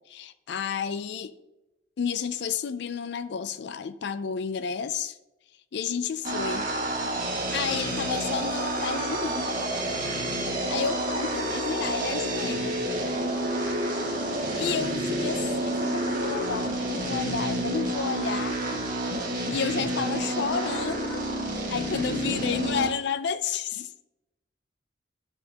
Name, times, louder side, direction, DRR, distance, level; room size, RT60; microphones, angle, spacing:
voice 1, 0.1-1.3 2.0-5.2 5.7-6.7 7.2-9.5 10.7-12.8 14.5-18.6 19.5-21.2 21.7-23.9, left 6 dB, 60° left, 0.4 m, -31 dB
sound 1, 6.2-22.9, right 1 dB, 45° right, 1.7 m, -29 dB
11.5 x 5.4 x 2.9 m
head